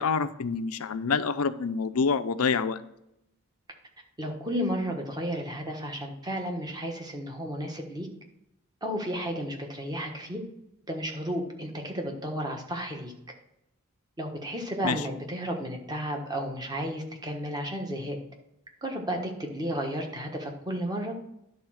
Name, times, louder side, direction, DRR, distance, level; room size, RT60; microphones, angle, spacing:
voice 1, 0.0-2.8 14.8-15.0, left 5 dB, 90° left, 13 dB, 0.6 m, -27 dB
voice 2, 4.2-8.1 8.8-10.4 10.9-13.1 14.2-18.2 18.8-21.1, equal, 20° right, 2 dB, 1.3 m, -33 dB
11.0 x 4.2 x 6.3 m, 0.83 s
head